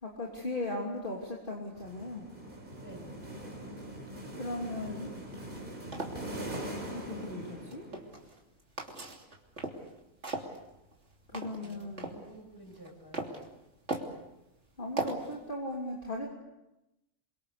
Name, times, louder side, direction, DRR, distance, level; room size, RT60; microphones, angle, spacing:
voice 1, 0.0-2.3 4.3-5.1 6.9-7.9 11.3-12.1 14.8-16.3, left 2 dB, 40° left, -2 dB, 3.3 m, -37 dB
sound 1, 1.7-8.3, right 1 dB, 40° right, 4.2 m, -42 dB
voice 2, 2.8-3.3 11.3-13.4, right 1 dB, 15° left, 2 dB, 7.2 m, -51 dB
sound 2, 5.6-6.7 7.5-8.4 8.8-9.9 10.2-12.2 12.7-13.4 13.9-14.2 15.0-15.4, right 2 dB, 60° right, 3.3 m, -38 dB
28.0 x 23.5 x 6.8 m, 0.94 s
omnidirectional pair, 1.4 m